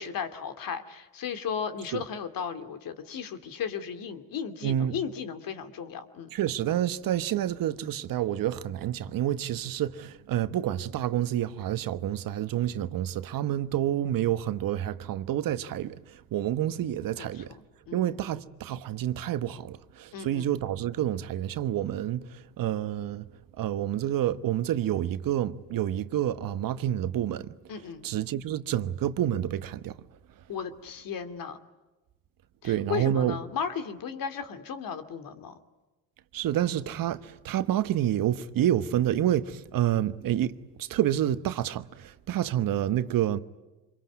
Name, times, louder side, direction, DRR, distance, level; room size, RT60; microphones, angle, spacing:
voice 1, 0.0-6.3 17.2-18.2 20.1-20.6 27.7-28.1 30.5-31.6 32.6-35.6, left 7 dB, 60° left, 2.6 m, -35 dB
voice 2, 4.6-4.9 6.3-17.5 17.9-23.3 23.6-27.5 28.0-30.0 32.6-33.4 36.3-43.4, right 11 dB, 60° right, 1.2 m, -28 dB
26.0 x 23.0 x 9.5 m
supercardioid pair, 80°, 38 cm